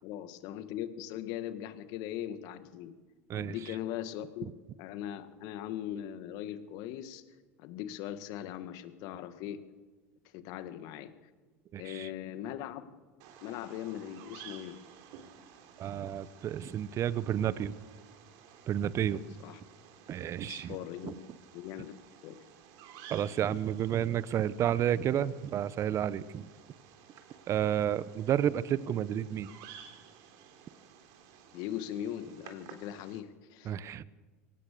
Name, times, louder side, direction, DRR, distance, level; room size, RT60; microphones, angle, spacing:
voice 1, 0.0-2.9 3.3-4.5 4.8-7.2 7.6-9.6 10.3-11.1 11.8-12.9 13.4-14.8 19.4-19.6 20.4-21.2 21.5-21.9 22.2-22.4 31.5-33.8, left 11 dB, 60° left, 11 dB, 1.8 m, -40 dB
voice 2, 11.7-12.1 15.8-17.8 18.7-19.2 20.1-20.8 21.0-21.1 23.1-26.5 27.5-29.5 33.6-34.0, right 10 dB, 40° right, 18 dB, 1.0 m, -31 dB
Bird vocalization bird call bird song, 13.2-33.2, right 8 dB, 60° right, 3.5 m, -54 dB
23.5 x 18.0 x 6.9 m, 1.3 s
hypercardioid pair, 90°, 7 cm